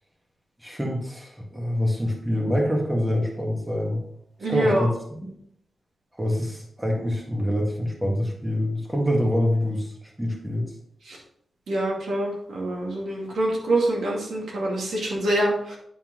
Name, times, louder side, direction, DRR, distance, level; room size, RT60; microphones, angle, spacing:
voice 1, 0.6-4.0 4.5-4.9 5.2-5.4 6.1-10.7, equal, 10° right, -1 dB, 1.8 m, -25 dB
voice 2, 4.4-4.9 11.0-11.2 11.7-15.8, right 1 dB, 85° right, -3 dB, 2.4 m, -25 dB
9.2 x 4.3 x 3.9 m, 0.70 s
wide cardioid pair, 115°, 0 cm